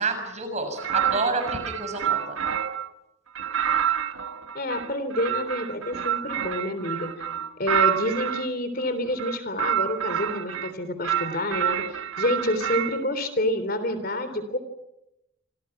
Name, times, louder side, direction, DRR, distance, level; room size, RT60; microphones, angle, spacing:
voice 1, 0.0-2.4, right 3 dB, 35° right, 6 dB, 6.5 m, -29 dB
sound 1, 0.8-2.9 3.4-8.5 9.1-10.7 11.0-13.0, right 9 dB, 85° right, 1.4 m, -28 dB
voice 2, 4.5-7.3 7.6-14.6, left 1 dB, 45° left, 10 dB, 3.4 m, -28 dB
28.0 x 27.0 x 6.0 m, 0.86 s
head